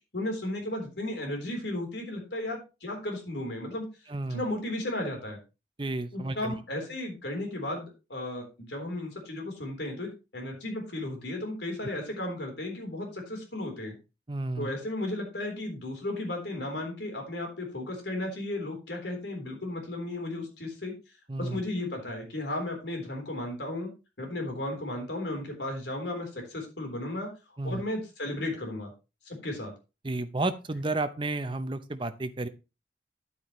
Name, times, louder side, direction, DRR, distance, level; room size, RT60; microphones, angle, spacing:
voice 1, 0.1-3.9 4.3-5.4 6.1-14.0 14.6-20.9 21.3-23.9 24.2-27.3 27.6-28.9 29.2-29.7, left 1 dB, 70° left, 2 dB, 3.7 m, -34 dB
voice 2, 4.1-4.4 5.8-6.5 14.3-14.7 21.3-21.6 27.6-27.8 30.0-32.5, right 2 dB, 30° right, 10 dB, 0.7 m, -32 dB
10.0 x 8.4 x 3.1 m, 0.28 s
head